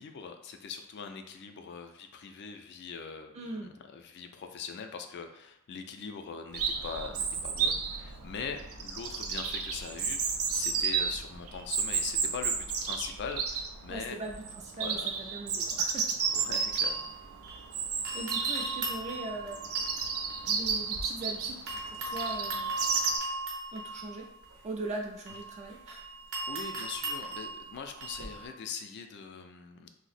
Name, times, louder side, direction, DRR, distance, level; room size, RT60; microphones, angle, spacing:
voice 1, 0.0-14.2 14.8-15.1 16.3-17.1 26.5-29.9, left 6 dB, 55° left, 6 dB, 0.4 m, -42 dB
voice 2, 3.3-3.7 13.9-16.4 18.0-19.7 20.4-22.8 23.7-24.3 24.6-26.0, right 2 dB, 30° right, 1 dB, 0.3 m, -40 dB
Chirp tweet, 6.5-23.2, right 5 dB, 90° right, 0.5 m, -32 dB
sound 1, 16.2-17.7 18.0-21.3 21.7-28.5, right 2 dB, 65° right, 0.8 m, -39 dB
2.7 x 2.0 x 4.0 m, 0.86 s
head